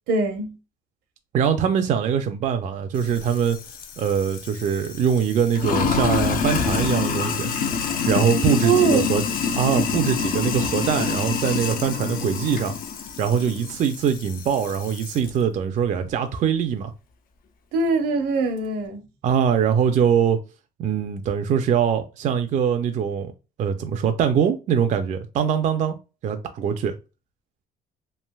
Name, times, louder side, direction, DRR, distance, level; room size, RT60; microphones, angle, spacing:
voice 1, 0.1-0.5 8.6-9.2 17.7-19.0, right 4 dB, 85° right, 0.8 m, -22 dB
voice 2, 1.3-3.6 4.0-7.6 8.1-9.2 9.5-12.8 13.2-16.9 19.2-20.4 20.8-23.3 23.6-26.0 26.2-26.9, right 7 dB, 45° right, 0.4 m, -22 dB
Sink (filling or washing), 3.0-15.3, left 6 dB, 55° left, 0.5 m, -27 dB
3.2 x 2.5 x 2.2 m
cardioid pair, 110°, 17 cm